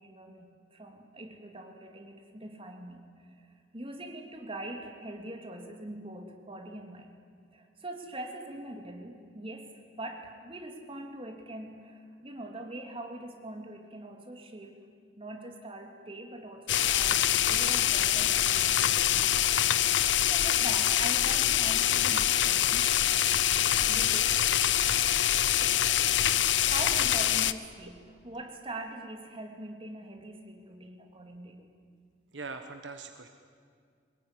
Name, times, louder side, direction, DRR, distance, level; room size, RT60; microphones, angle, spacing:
voice 1, 0.0-7.1 7.5-14.8 15.2-19.4 19.7-22.9 23.9-24.5 26.6-31.7, right 1 dB, 30° right, 3 dB, 3.1 m, -43 dB
sound 1, 16.7-27.5, left 11 dB, 85° left, 0.8 m, -25 dB
voice 2, 32.3-33.3, right 4 dB, 85° right, 6 dB, 1.3 m, -42 dB
23.5 x 20.5 x 10.0 m, 2.2 s
head